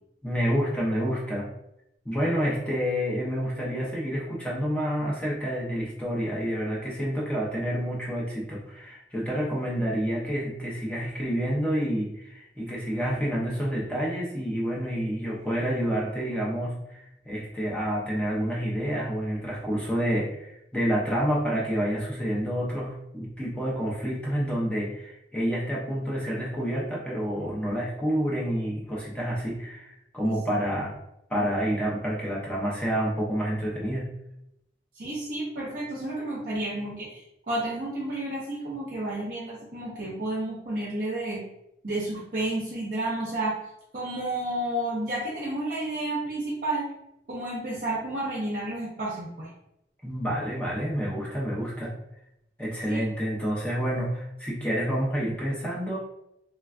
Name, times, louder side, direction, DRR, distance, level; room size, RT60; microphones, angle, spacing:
voice 1, 0.2-1.5 2.0-30.9 31.3-34.1 50.0-51.9 52.6-56.0, equal, 5° left, -5 dB, 0.6 m, -28 dB
voice 2, 35.0-41.4 41.8-43.6 43.9-46.9 47.3-49.5 52.9-53.1, right 1 dB, 50° right, -5 dB, 0.6 m, -31 dB
3.2 x 2.3 x 2.4 m, 0.82 s
head